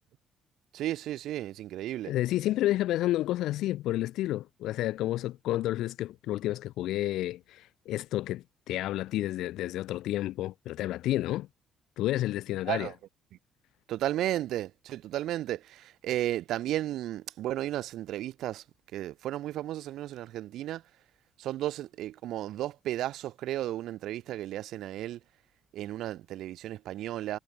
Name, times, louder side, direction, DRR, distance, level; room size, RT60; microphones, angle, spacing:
voice 1, 0.7-2.1 12.7-12.9 13.9-18.6 18.9-20.8 21.4-25.2 25.7-27.4, right 13 dB, 75° right, 0.3 m, -34 dB
voice 2, 2.0-11.5 12.0-12.9, left 15 dB, 80° left, 0.3 m, -30 dB
supercardioid pair, 65°, 0 cm